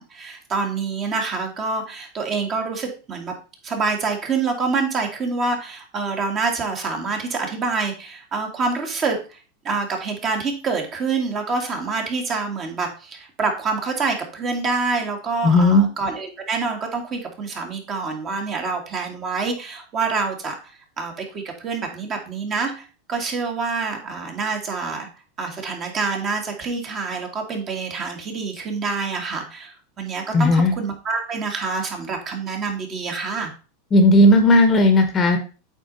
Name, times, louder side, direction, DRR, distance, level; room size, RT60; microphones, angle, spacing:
voice 1, 0.0-3.3 3.6-9.2 9.6-20.5 21.0-22.8 23.1-25.1 25.4-33.5, right 4 dB, 30° right, 3 dB, 1.9 m, -26 dB
voice 2, 15.4-15.9 30.3-30.7 33.9-35.4, left 1 dB, 25° left, 7 dB, 1.1 m, -14 dB
8.2 x 4.5 x 4.0 m, 0.34 s
supercardioid pair, 135°, 0 cm